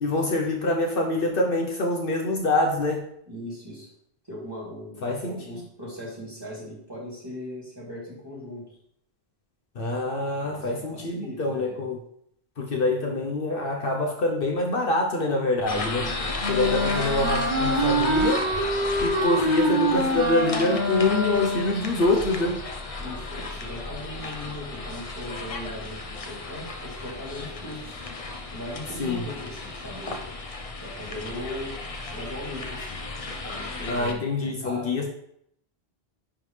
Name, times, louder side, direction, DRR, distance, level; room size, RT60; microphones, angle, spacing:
voice 1, 0.0-3.0 5.0-5.6 9.7-12.0 12.6-16.1 16.5-18.4 19.0-22.6 29.0-29.2 33.9-35.1, left 2 dB, 60° left, 1 dB, 1.0 m, -25 dB
voice 2, 3.3-3.9 4.3-8.7 10.4-11.8 15.9-16.3 16.6-16.9 23.0-28.0 28.5-30.2 30.8-31.7 32.1-33.0 33.4-35.1, left 1 dB, 20° right, -8 dB, 2.9 m, -39 dB
sound 1, 15.7-34.1, left 2 dB, 40° left, 0.7 m, -34 dB
Wind instrument woodwind instrument, 16.4-21.9, equal, 50° right, 1.1 m, -25 dB
10.0 x 3.8 x 3.2 m, 0.71 s
omnidirectional pair, 1.1 m